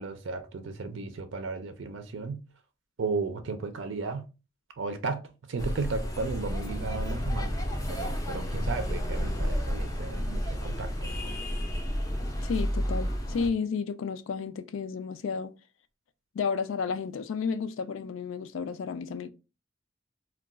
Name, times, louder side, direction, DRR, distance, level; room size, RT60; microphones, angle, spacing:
voice 1, 0.0-2.4 3.0-4.2 4.8-7.5 7.9-10.9, right 4 dB, 70° right, 0.5 m, -34 dB
sound 1, 5.6-13.5, equal, 15° left, 0.4 m, -31 dB
voice 2, 12.4-15.5 16.3-19.3, left 5 dB, 80° left, 0.4 m, -32 dB
2.3 x 2.3 x 3.7 m
head